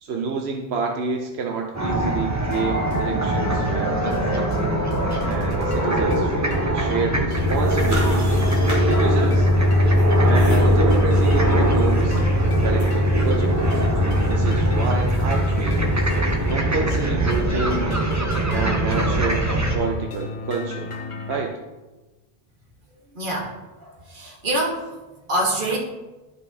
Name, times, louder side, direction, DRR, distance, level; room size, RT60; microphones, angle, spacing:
voice 1, 0.0-4.6 5.2-8.3 8.8-9.5 10.2-12.2 12.6-13.5 14.2-15.9 16.5-17.9 18.5-20.9 21.3-21.5, right 5 dB, 85° right, 1 dB, 1.0 m, -29 dB
sound 1, 1.7-19.8, right 1 dB, 20° right, 0.8 m, -23 dB
sound 2, 2.4-21.5, left 4 dB, 45° left, 0.4 m, -33 dB
sound 3, 7.3-16.5, left 1 dB, 35° right, 2.4 m, -21 dB
voice 2, 23.1-23.5 23.8-24.8 25.3-25.8, right 1 dB, 55° right, -1 dB, 1.5 m, -25 dB
11.0 x 5.5 x 2.7 m, 1.1 s
omnidirectional pair, 1.0 m